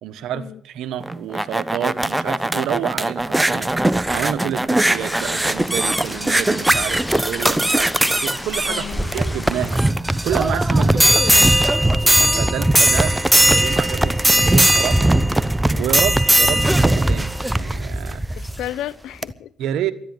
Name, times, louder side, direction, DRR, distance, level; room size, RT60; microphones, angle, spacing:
voice 1, 0.0-10.0 10.2-11.2 12.4-15.1 15.8-18.2 19.6-19.9, right 10 dB, 75° right, 1.2 m, -29 dB
sound 1, 1.0-18.7 19.2-19.3, right 1 dB, 10° right, 0.8 m, -18 dB
sound 2, 4.9-9.9, left 1 dB, 15° left, 1.3 m, -34 dB
voice 2, 8.7-9.2 10.8-11.5 16.5-16.7 18.4-19.5, left 12 dB, 70° left, 0.6 m, -33 dB
13.0 x 9.8 x 9.6 m
hypercardioid pair, 55°, 0 cm